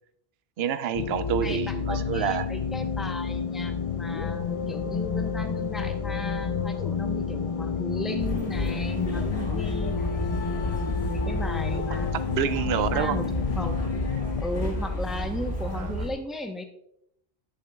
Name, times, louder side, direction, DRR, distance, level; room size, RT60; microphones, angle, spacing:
voice 1, 0.6-2.5 10.9-11.0 11.7-13.2 15.7-15.9, right 9 dB, 75° right, 11 dB, 0.8 m, -28 dB
sound 1, 0.9-14.4, left 6 dB, 45° left, 0.4 m, -30 dB
voice 2, 1.4-10.3 11.0-12.2 12.7-13.9 14.4-16.6, left 1 dB, ahead, 5 dB, 0.8 m, -36 dB
sound 2, 8.2-16.1, equal, 85° left, 2.0 m, -31 dB
12.0 x 7.2 x 2.3 m, 0.73 s
omnidirectional pair, 1.1 m